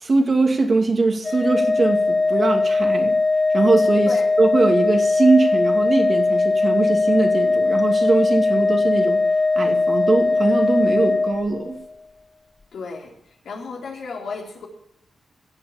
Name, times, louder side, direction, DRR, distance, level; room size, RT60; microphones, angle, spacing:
voice 1, 0.0-3.2 3.5-9.2 9.6-11.8, right 3 dB, 45° right, 3 dB, 2.5 m, -21 dB
Organ, 1.2-11.9, left 3 dB, 35° left, 0.5 m, -20 dB
voice 2, 12.7-14.7, left 4 dB, 80° left, -1 dB, 3.7 m, -33 dB
16.0 x 7.9 x 7.1 m, 0.82 s
cardioid pair, 60°, 0 cm